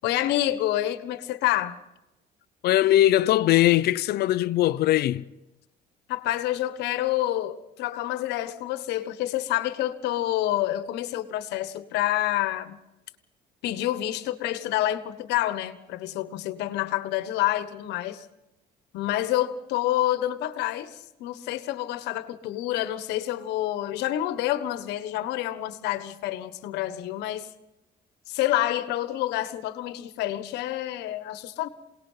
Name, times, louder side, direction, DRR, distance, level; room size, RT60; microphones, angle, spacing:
voice 1, 0.0-1.8 6.1-12.8 13.6-18.3 18.9-27.5 28.3-31.7, left 14 dB, 90° left, 1.3 m, -28 dB
voice 2, 2.6-5.3, left 14 dB, 70° left, 0.7 m, -20 dB
28.0 x 18.5 x 5.7 m
cardioid pair, 110°, 17 cm